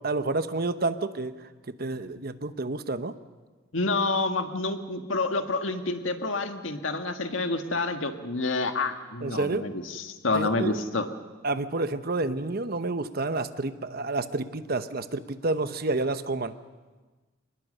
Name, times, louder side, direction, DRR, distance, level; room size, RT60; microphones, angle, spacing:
voice 1, 0.0-1.4 1.8-3.1 9.2-9.6 10.3-10.7 11.4-16.6, right 2 dB, 50° right, 11 dB, 0.9 m, -29 dB
voice 2, 3.7-11.1, left 3 dB, 85° left, 6 dB, 1.7 m, -28 dB
25.0 x 20.0 x 6.7 m, 1.3 s
head